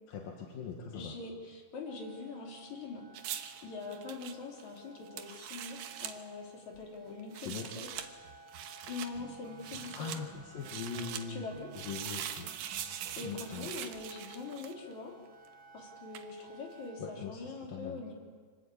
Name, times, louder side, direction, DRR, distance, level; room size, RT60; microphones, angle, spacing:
voice 1, 0.1-1.1 7.4-7.7 9.9-11.5 11.7-12.5 13.2-13.7 17.0-17.4 17.7-18.0, left 6 dB, 75° left, 0 dB, 3.5 m, -41 dB
voice 2, 0.9-3.3 3.6-7.9 8.9-10.1 11.3-11.7 13.2-15.1 15.7-18.1, left 4 dB, 55° left, 0 dB, 4.6 m, -43 dB
sound 1, 1.9-17.2, right 3 dB, 30° right, 1.5 m, -56 dB
sound 2, 3.1-6.2 7.2-8.1 8.5-9.1 9.6-10.2 10.6-11.2 11.7-14.9 16.1-16.3, right 10 dB, 85° right, 3.0 m, -42 dB
sound 3, 6.7-7.1 7.6-14.8, right 8 dB, 60° right, 2.3 m, -55 dB
25.5 x 19.0 x 8.5 m, 1.5 s
omnidirectional pair, 4.1 m